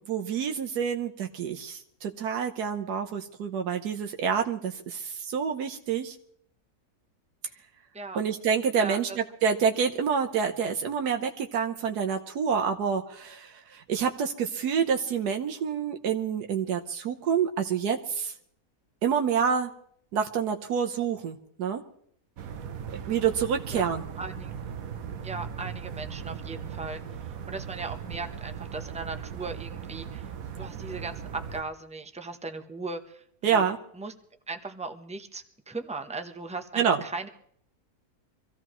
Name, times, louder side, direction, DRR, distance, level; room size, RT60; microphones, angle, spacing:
voice 1, 0.1-6.1 8.1-9.1 9.4-18.3 19.0-19.7 20.1-21.8 23.1-24.0 33.4-33.8 36.8-37.0, right 7 dB, 85° right, 4 dB, 1.4 m, -27 dB
voice 2, 8.8-9.2 23.7-24.5 25.2-27.0 27.5-30.3 30.6-33.6 33.9-34.1 34.5-37.3, right 3 dB, 10° right, 6 dB, 0.4 m, -38 dB
sound 1, 22.4-31.6, right 7 dB, 65° right, 1.2 m, -38 dB
25.0 x 15.0 x 3.0 m, 0.65 s
omnidirectional pair, 1.7 m